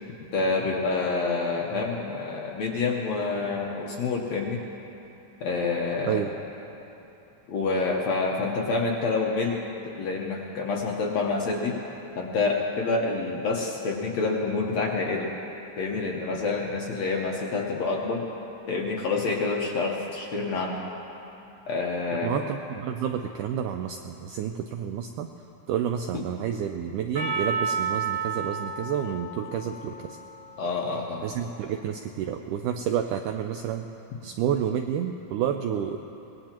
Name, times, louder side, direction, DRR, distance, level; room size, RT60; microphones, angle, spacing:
voice 1, 0.3-4.6 5.4-6.2 7.5-9.6 9.8-11.8 12.2-15.3 15.8-18.2 18.7-20.8 21.7-22.4 26.1-26.2 30.6-31.2, left 3 dB, 65° left, -2 dB, 1.8 m, -27 dB
voice 2, 22.2-25.3 25.7-30.2 31.2-33.9 34.2-36.0, right 9 dB, 85° right, 5 dB, 1.8 m, -29 dB
Percussion, 27.1-31.6, right 5 dB, 65° right, 0.6 m, -32 dB
23.5 x 19.0 x 3.0 m, 3.0 s
omnidirectional pair, 4.2 m